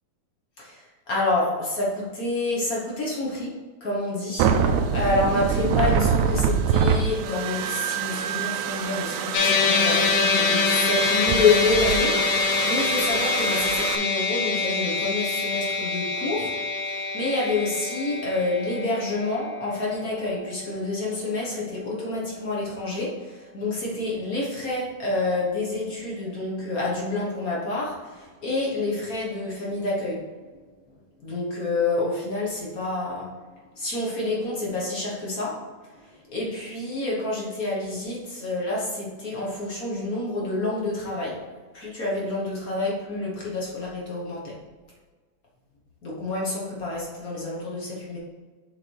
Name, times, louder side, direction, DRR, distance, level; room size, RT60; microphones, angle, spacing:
voice 1, 0.6-3.5 3.8-16.5 16.8-30.2 31.2-33.3 33.7-35.6 35.9-41.4 41.7-44.6 46.0-48.2, left 2 dB, 45° left, -4 dB, 1.2 m, -28 dB
sound 1, 4.4-14.0, right 7 dB, 85° right, 2.0 m, -25 dB
sound 2, 9.3-21.8, left 5 dB, 80° left, 2.1 m, -26 dB
6.8 x 4.1 x 4.6 m, 1.4 s
omnidirectional pair, 3.3 m